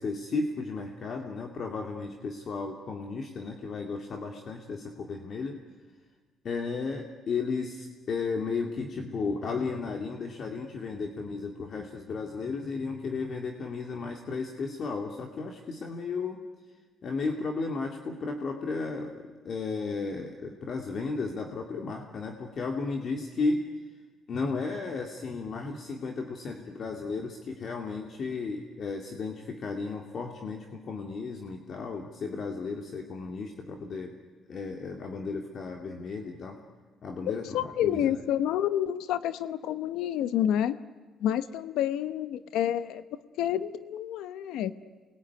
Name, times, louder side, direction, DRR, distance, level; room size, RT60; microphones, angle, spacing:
voice 1, 0.0-5.6 6.4-16.4 17.0-23.6 24.3-34.1 34.5-36.6 37.0-38.2, left 4 dB, 50° left, 3 dB, 2.5 m, -34 dB
voice 2, 37.5-40.8 41.2-44.7, left 10 dB, 90° left, 13 dB, 0.9 m, -29 dB
28.0 x 21.5 x 9.6 m, 1.4 s
cardioid pair, 110°, 0 cm